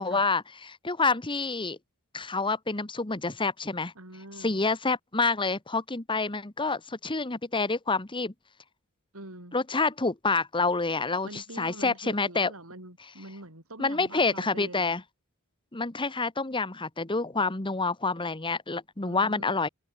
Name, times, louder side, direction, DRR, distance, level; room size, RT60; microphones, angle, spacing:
voice 1, 0.0-1.8 2.1-3.9 4.4-8.3 9.5-12.5 13.8-15.0 15.7-19.7, left 3 dB, 25° left, 1.4 m, -28 dB
voice 2, 3.9-4.6 9.1-9.6 11.2-14.9 19.0-19.6, right 1 dB, 75° right, 6.8 m, -44 dB
head